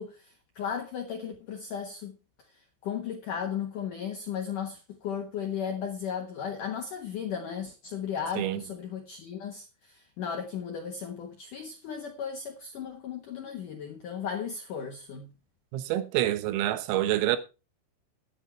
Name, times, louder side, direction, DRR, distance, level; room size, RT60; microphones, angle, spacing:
voice 1, 0.0-2.1 2.8-15.3, left 7 dB, 75° left, 1.9 m, -35 dB
voice 2, 15.7-17.4, right 14 dB, 85° right, 3.8 m, -27 dB
11.5 x 10.0 x 4.5 m
omnidirectional pair, 5.9 m